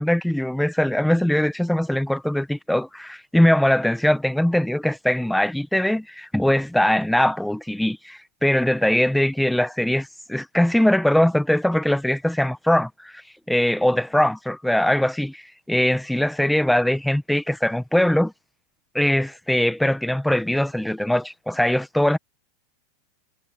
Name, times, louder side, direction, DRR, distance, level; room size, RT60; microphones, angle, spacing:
voice 1, 0.0-13.2 13.5-15.4 15.7-18.3 18.9-22.2, left 1 dB, ahead, 0.8 m, -21 dB
supercardioid pair, 165°, 0 cm